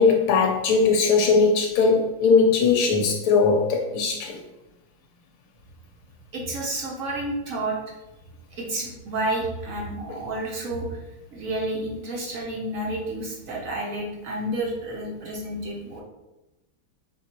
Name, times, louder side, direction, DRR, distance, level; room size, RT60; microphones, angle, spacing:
voice 1, 0.0-4.4, left 4 dB, 80° left, 2 dB, 1.4 m, -19 dB
voice 2, 6.3-7.8 8.6-11.0 11.3-16.0, right 1 dB, 75° right, -3 dB, 0.7 m, -30 dB
4.5 x 3.7 x 2.9 m, 1.0 s
omnidirectional pair, 2.4 m